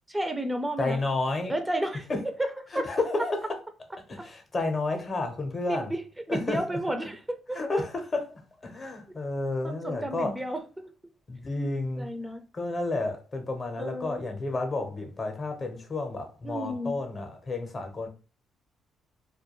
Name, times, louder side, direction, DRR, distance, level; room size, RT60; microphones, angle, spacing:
voice 1, 0.1-1.0 1.5-2.1 2.4-2.9 4.2-4.3 5.7-7.9 9.1-9.2 9.6-10.9 12.0-12.4 13.8-14.2 16.4-17.0, right 1 dB, 10° right, 0.4 m, -32 dB
voice 2, 0.8-1.5 2.1-2.2 2.7-3.4 4.1-5.9 6.3-6.8 7.5-8.3 8.6-10.3 11.3-12.1 12.5-18.1, left 2 dB, 35° left, 0.6 m, -31 dB
2.2 x 2.2 x 2.9 m
cardioid pair, 90°, 0 cm